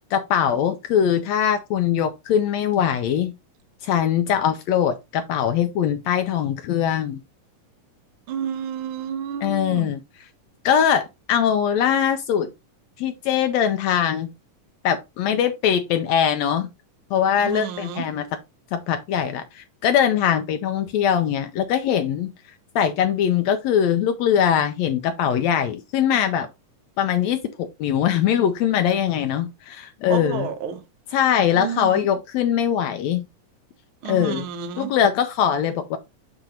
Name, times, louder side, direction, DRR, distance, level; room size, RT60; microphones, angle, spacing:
voice 1, 0.1-3.3 3.8-7.2 9.4-10.0 10.6-12.5 13.0-14.3 14.8-16.7 17.1-18.4 18.7-22.3 22.7-26.5 27.0-30.5 31.1-33.2 34.1-34.5 34.8-36.0, left 9 dB, 85° left, 1.5 m, -22 dB
voice 2, 8.3-9.9 17.4-18.0 30.1-30.8 31.5-31.9 34.0-34.9, right 7 dB, 70° right, 1.3 m, -30 dB
7.6 x 2.9 x 4.9 m
omnidirectional pair, 3.8 m